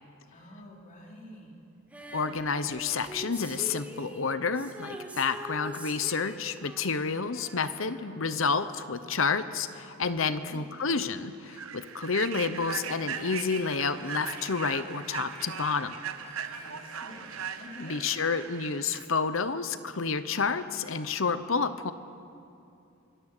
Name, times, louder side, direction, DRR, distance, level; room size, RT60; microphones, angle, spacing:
voice 1, 0.3-1.6 8.0-8.4 10.2-10.6 16.6-18.0, left 1 dB, 40° left, -2 dB, 4.6 m, -49 dB
Female singing, 1.9-8.9 10.0-10.1, right 1 dB, 5° right, 2.4 m, -44 dB
voice 2, 2.1-16.0 17.8-21.9, left 5 dB, 65° left, 12 dB, 0.9 m, -30 dB
Human voice / Train, 10.2-10.3 10.8-10.9 11.5-19.0, right 7 dB, 85° right, 1.2 m, -39 dB
Harmonica, 12.9-17.8, equal, 10° left, 7.8 m, -52 dB
25.5 x 22.0 x 6.8 m, 2.6 s
head